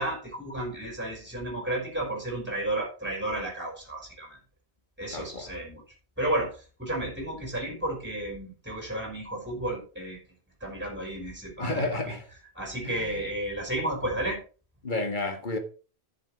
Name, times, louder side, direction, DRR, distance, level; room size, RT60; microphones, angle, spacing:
voice 1, 0.0-4.4 5.0-5.8 6.2-10.2 10.6-12.1 12.6-14.4, right 1 dB, 10° right, 5.2 m, -32 dB
voice 2, 5.1-5.5 11.6-12.3 12.8-13.2 14.8-15.6, left 2 dB, 45° left, 1.9 m, -31 dB
11.0 x 7.2 x 4.8 m
omnidirectional pair, 1.1 m